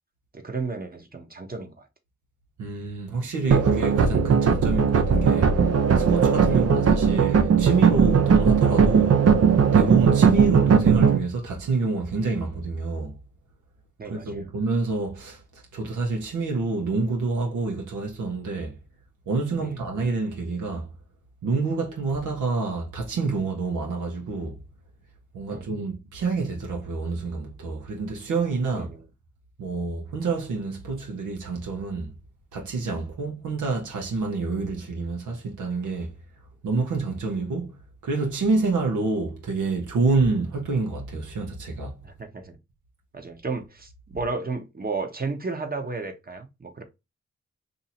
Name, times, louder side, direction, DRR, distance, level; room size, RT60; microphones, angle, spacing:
voice 1, 0.3-1.9 3.1-3.2 6.5-6.6 14.0-14.5 19.6-19.8 25.5-25.7 28.7-29.0 42.0-42.6 43.1-46.8, right 4 dB, 30° right, 1.0 m, -33 dB
voice 2, 2.6-5.7 6.0-9.2 9.7-13.1 14.0-15.4 15.7-18.8 19.3-20.9 21.4-24.6 25.3-28.9 29.6-32.1 32.5-36.1 36.6-37.8 38.0-42.0, right 3 dB, 80° right, 0.9 m, -27 dB
sound 1, 3.5-11.2, right 6 dB, 55° right, 0.6 m, -18 dB
2.7 x 2.7 x 4.2 m
supercardioid pair, 45°, 30 cm